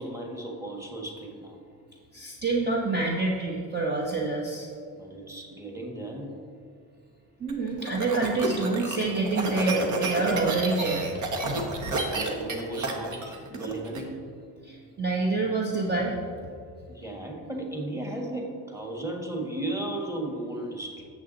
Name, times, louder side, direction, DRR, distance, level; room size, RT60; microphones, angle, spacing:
voice 1, 0.0-1.6 4.9-6.3 11.7-14.3 16.9-21.1, right 1 dB, 10° right, 1 dB, 1.5 m, -35 dB
voice 2, 2.1-4.7 7.4-11.3 14.6-16.2, right 3 dB, 30° right, -2 dB, 1.0 m, -27 dB
sound 1, 7.5-14.0, right 2 dB, 55° right, 1.3 m, -30 dB
8.1 x 7.1 x 4.0 m, 2.3 s
cardioid pair, 95°, 36 cm